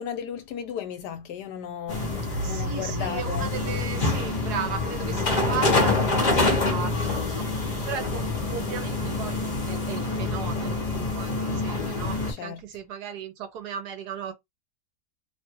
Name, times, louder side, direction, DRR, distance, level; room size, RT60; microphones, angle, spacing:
voice 1, 0.0-2.1 2.5-3.5 5.1-5.4 6.3-6.6 12.4-12.6, left 8 dB, 75° left, 1.1 m, -35 dB
sound 1, 1.9-12.3, left 2 dB, 35° left, 0.7 m, -26 dB
voice 2, 2.4-7.5 7.9-14.3, right 7 dB, 70° right, 1.1 m, -36 dB
2.9 x 2.3 x 2.9 m
omnidirectional pair, 1.9 m